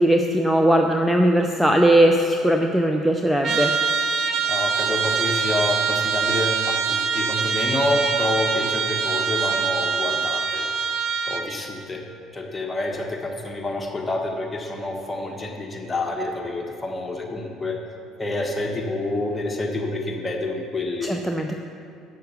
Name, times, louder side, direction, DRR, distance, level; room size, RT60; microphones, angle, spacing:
voice 1, 0.0-3.7 21.0-21.5, right 1 dB, ahead, 3 dB, 0.6 m, -19 dB
Trumpet, 3.4-11.5, right 5 dB, 55° right, 0.8 m, -24 dB
voice 2, 4.4-10.7 11.3-12.0 12.3-17.8 18.2-21.1, left 2 dB, 20° left, 1 dB, 1.5 m, -28 dB
7.9 x 6.8 x 7.1 m, 2.4 s
hypercardioid pair, 70°, 0 cm